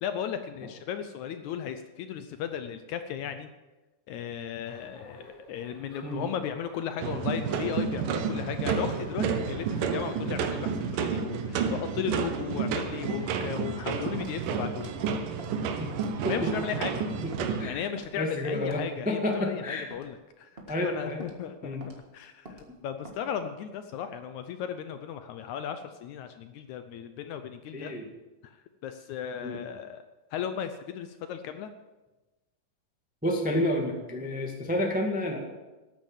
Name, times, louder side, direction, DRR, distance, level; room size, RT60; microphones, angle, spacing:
voice 1, 0.0-3.5 4.1-14.9 16.3-17.1 17.6-21.8 22.1-27.9 28.4-28.6 28.8-30.0 30.3-31.7, left 8 dB, 75° left, 9 dB, 1.8 m, -36 dB
sound 1, 4.6-10.7, left 1 dB, 45° left, 7.0 m, -51 dB
sound 2, 7.0-17.7, right 6 dB, 80° right, 2.6 m, -30 dB
Walk footsteps, 14.2-14.4 14.8-15.0 15.4-15.6 15.9-16.2 16.6-16.8 17.3-17.5 18.0-18.2 18.6-18.8 19.3-19.4 19.9-20.1 20.6-20.8 21.2-21.4 21.8-22.0 22.5-22.7 23.0-23.2, right 2 dB, 30° right, 1.1 m, -46 dB
voice 2, 17.2-17.8 18.2-19.9 20.7-21.2 21.6-21.8 27.7-28.1 29.4-29.6 33.2-35.4, left 1 dB, 10° right, 1 dB, 0.5 m, -30 dB
13.0 x 9.2 x 7.3 m, 1.1 s
omnidirectional pair, 3.9 m